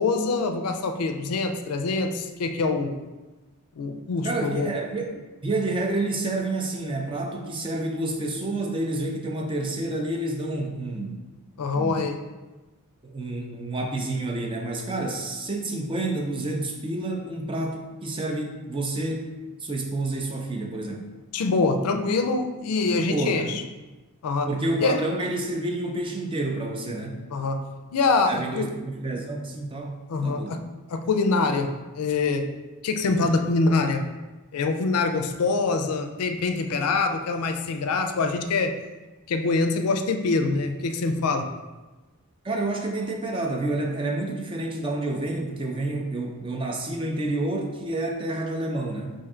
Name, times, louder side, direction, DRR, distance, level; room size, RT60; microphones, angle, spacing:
voice 1, 0.0-3.0 3.8-4.7 11.6-12.2 21.3-23.6 24.2-24.5 24.8-25.0 27.3-27.7 27.9-28.7 30.1-30.6 30.9-32.5 32.8-34.0 34.5-38.7 39.3-41.5, left 3 dB, 85° left, 6 dB, 0.4 m, -24 dB
voice 2, 4.2-11.2 11.7-12.0 13.0-19.3 19.6-21.1 23.0-23.5 24.5-27.2 28.3-30.6 42.4-49.1, right 2 dB, 25° right, 1 dB, 0.4 m, -29 dB
4.4 x 2.6 x 3.7 m, 1.2 s
head